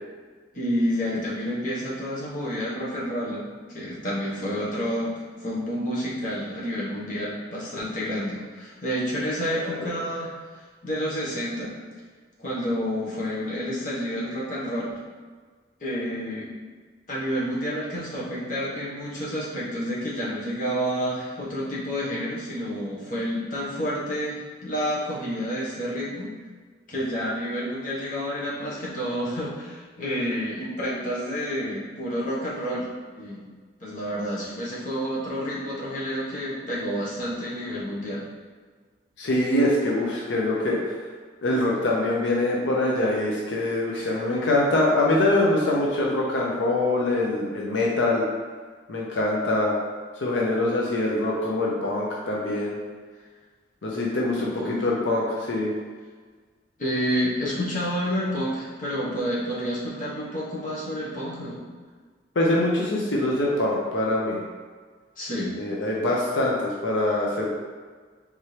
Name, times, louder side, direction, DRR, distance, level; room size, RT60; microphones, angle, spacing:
voice 1, 0.5-10.3 10.8-11.7 12.4-14.9 15.8-16.5 17.1-26.3 26.9-32.9 33.1-33.4 33.8-38.3 54.4-54.8 56.8-61.6 65.2-65.6, equal, 45° left, -7 dB, 1.2 m, -29 dB
voice 2, 39.2-40.8 41.4-48.3 48.9-49.8 50.2-52.8 53.8-55.7 62.4-64.4 65.6-67.6, left 1 dB, 85° left, -3 dB, 0.6 m, -24 dB
4.3 x 3.6 x 3.2 m, 1.5 s
head